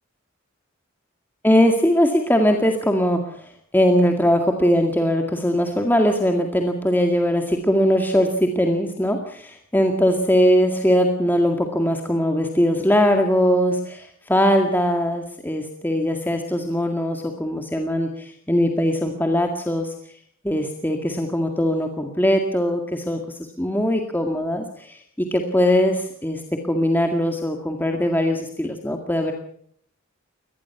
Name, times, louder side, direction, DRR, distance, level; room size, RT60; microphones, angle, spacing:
voice 1, 1.4-3.2 3.7-19.9 20.4-23.2 23.6-26.4 26.7-29.3, equal, 10° left, 3 dB, 2.1 m, -20 dB
23.5 x 19.5 x 5.9 m, 0.63 s
head